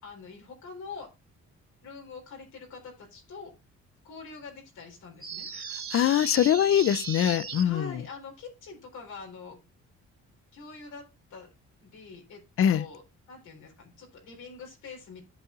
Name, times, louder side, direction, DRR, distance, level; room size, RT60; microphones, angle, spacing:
voice 1, 0.0-1.1 1.8-3.5 4.0-5.5 7.6-9.6 10.5-11.5 11.8-12.4 12.7-13.0 13.3-15.2, left 4 dB, 75° left, 4.2 m, -44 dB
sound 1, 5.2-7.6, right 6 dB, 45° right, 3.4 m, -37 dB
voice 2, 5.9-8.0 12.6-12.9, left 10 dB, 50° left, 0.5 m, -23 dB
15.0 x 5.2 x 2.5 m
cardioid pair, 90°, 30 cm